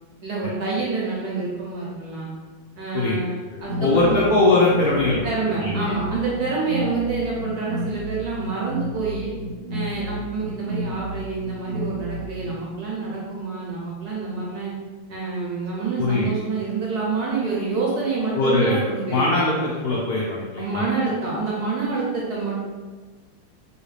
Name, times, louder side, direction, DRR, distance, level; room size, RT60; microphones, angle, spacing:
voice 1, 0.2-2.3 2.8-4.2 5.2-9.3 9.7-14.7 15.1-19.4 20.6-22.6, right 4 dB, 70° right, -5 dB, 1.0 m, -27 dB
voice 2, 3.5-5.3 5.6-5.9 16.0-16.3 18.3-18.8 19.1-20.8, left 2 dB, 80° left, -4 dB, 0.8 m, -21 dB
sound 1, 3.6-12.6, right 1 dB, 85° right, 1.5 m, -32 dB
3.1 x 2.7 x 3.1 m, 1.4 s
omnidirectional pair, 2.2 m